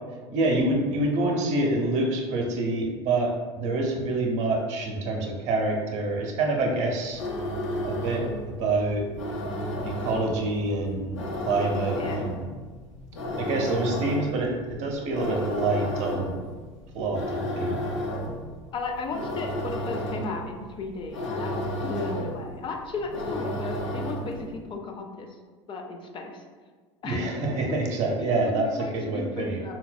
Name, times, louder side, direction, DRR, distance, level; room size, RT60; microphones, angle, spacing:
voice 1, 0.3-7.2 7.8-8.2 8.6-9.1 9.8-11.2 11.5-12.5 13.4-16.4 16.9-17.8 27.0-29.6, right 2 dB, 50° right, 0 dB, 0.7 m, -26 dB
sound 1, 7.0-24.5, equal, 75° left, 0.6 m, -32 dB
voice 2, 12.0-12.4 18.7-25.3 25.7-26.4 27.0-27.2 27.6-27.8 28.2-29.8, left 3 dB, 35° left, 2 dB, 0.4 m, -35 dB
3.9 x 2.2 x 2.2 m, 1.4 s
hypercardioid pair, 70°, 15 cm